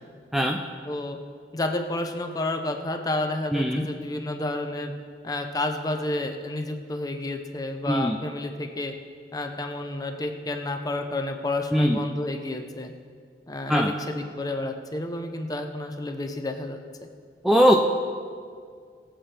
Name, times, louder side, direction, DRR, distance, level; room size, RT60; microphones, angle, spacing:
voice 1, 0.9-1.2 1.5-4.9 5.2-8.9 9.3-12.9 13.5-17.1, left 2 dB, 20° left, 5 dB, 0.8 m, -30 dB
voice 2, 3.5-3.9 7.9-8.2 11.7-12.0 13.7-13.9 17.4-17.8, equal, ahead, 1 dB, 0.5 m, -20 dB
22.0 x 7.6 x 3.4 m, 2.1 s
head